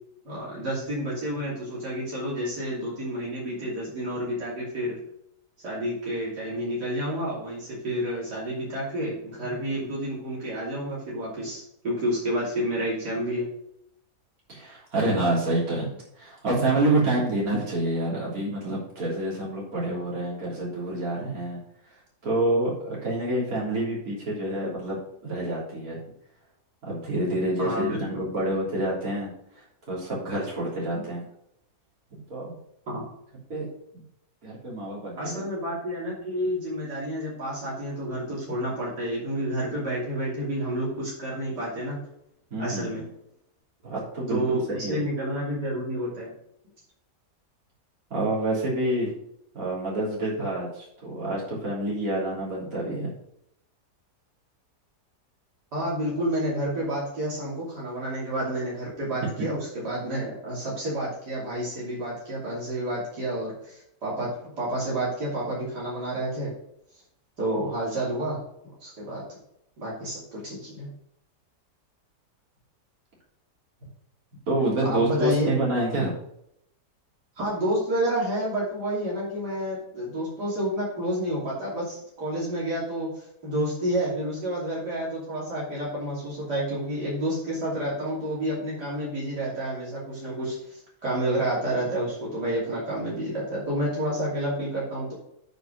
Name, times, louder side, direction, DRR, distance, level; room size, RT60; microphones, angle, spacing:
voice 1, 0.3-5.0 5.6-13.5 27.6-28.2 32.9-33.0 35.2-42.0 42.6-43.0 44.3-46.3 55.7-66.5 67.4-68.4 68.8-69.2 69.8-70.9 74.9-75.5 77.4-95.1, right 1 dB, 80° right, -6 dB, 3.5 m, -29 dB
voice 2, 14.5-21.6 21.9-22.0 22.2-25.0 25.2-26.0 26.9-29.3 29.6-31.2 32.1-32.5 33.5-33.7 34.4-35.4 42.5-43.0 43.8-45.0 48.1-49.1 49.5-53.1 59.2-59.3 74.5-76.2, right 1 dB, 60° right, -6 dB, 3.8 m, -27 dB
9.1 x 5.1 x 5.1 m, 0.74 s
omnidirectional pair, 1.8 m